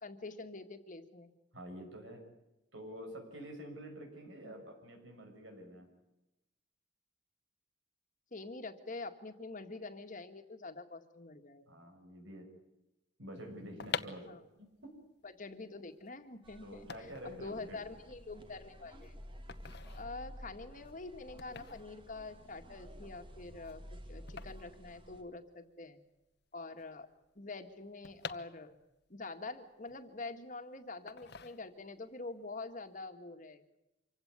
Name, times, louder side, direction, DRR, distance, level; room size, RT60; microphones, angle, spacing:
voice 1, 0.0-1.3 4.4-4.6 8.3-11.8 14.3-14.4 15.2-19.2 20.0-26.0 26.5-27.1 27.4-28.8 29.1-33.6, left 3 dB, 40° left, 7 dB, 1.9 m, -46 dB
voice 2, 1.5-2.2 2.7-5.9 11.7-12.5 13.2-15.0 16.6-17.8, equal, 75° right, 2 dB, 6.4 m, -48 dB
sound 1, 13.5-25.7 25.9-26.0 26.2-29.1 29.5-30.5 31.1-32.1 32.4-32.7, left 6 dB, 55° left, 1.1 m, -47 dB
sound 2, 16.4-25.2, equal, 25° right, 2.1 m, -52 dB
26.0 x 16.5 x 9.6 m, 0.94 s
head